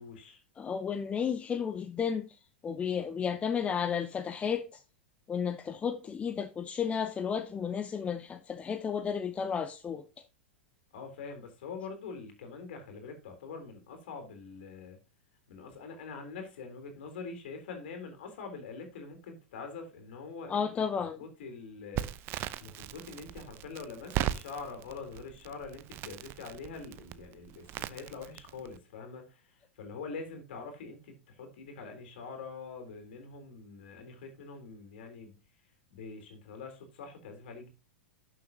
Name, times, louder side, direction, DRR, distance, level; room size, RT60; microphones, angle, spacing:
voice 1, 0.0-0.4 10.9-15.0 15.5-20.7 21.0-22.1 22.6-35.4 35.9-37.7, left 4 dB, 55° left, 3.5 m, -44 dB
voice 2, 0.6-2.3 2.6-4.6 5.3-10.0 20.5-21.2, left 7 dB, 20° left, 0.8 m, -32 dB
Crackle, 21.9-28.8, right 13 dB, 35° right, 0.7 m, -39 dB
11.5 x 6.8 x 2.8 m
figure-of-eight pair, 100°, 7 cm